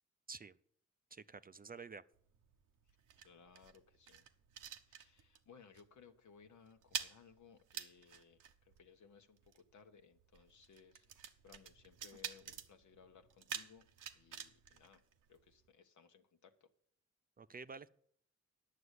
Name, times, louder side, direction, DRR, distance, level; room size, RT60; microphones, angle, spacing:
voice 1, 1.1-2.0 17.4-17.9, right 4 dB, 30° right, 0.5 m, -50 dB
sound 1, 2.1-5.5 5.7-6.0 6.3-15.7, right 8 dB, 85° right, 0.9 m, -49 dB
voice 2, 3.2-4.2 4.9-13.9 14.1-15.0 15.3-16.7, left 6 dB, 70° left, 1.0 m, -63 dB
9.6 x 6.6 x 8.1 m
cardioid pair, 65°, 31 cm